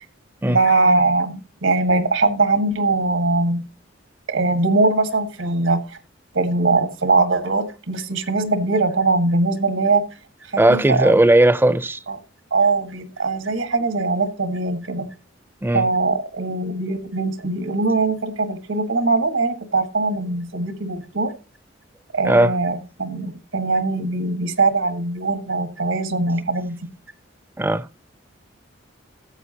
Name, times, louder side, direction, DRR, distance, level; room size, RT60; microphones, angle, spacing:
voice 1, 0.5-3.6 4.3-5.8 6.3-10.0 10.5-11.1 12.1-12.2 12.5-15.1 15.7-21.3 22.1-26.7, right 3 dB, 80° right, 1.6 m, -21 dB
voice 2, 10.6-12.0 15.6-15.8 22.2-22.5 27.6-27.9, right 1 dB, 10° right, 0.4 m, -16 dB
14.0 x 8.4 x 2.8 m
head